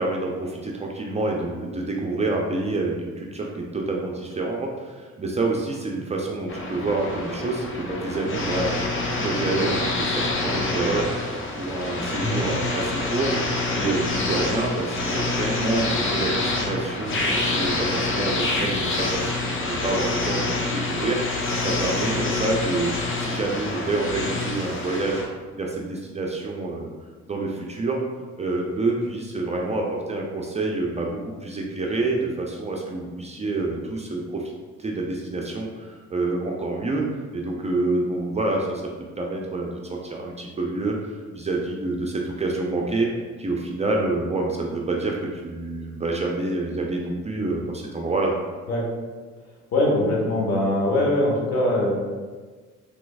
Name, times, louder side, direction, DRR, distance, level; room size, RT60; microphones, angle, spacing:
voice 1, 0.0-11.1 11.6-21.2 21.6-22.9 23.2-25.3 25.6-26.9 27.3-28.0 28.4-34.5 34.8-37.1 37.3-38.8 39.2-43.1 43.4-48.6, right 2 dB, 25° right, -1 dB, 0.4 m, -27 dB
sound 1, 6.5-25.2, left 2 dB, 45° left, 0.6 m, -27 dB
voice 2, 49.7-51.9, left 1 dB, 60° left, -3 dB, 1.0 m, -22 dB
3.3 x 3.0 x 2.3 m, 1.4 s
cardioid pair, 90°, 30 cm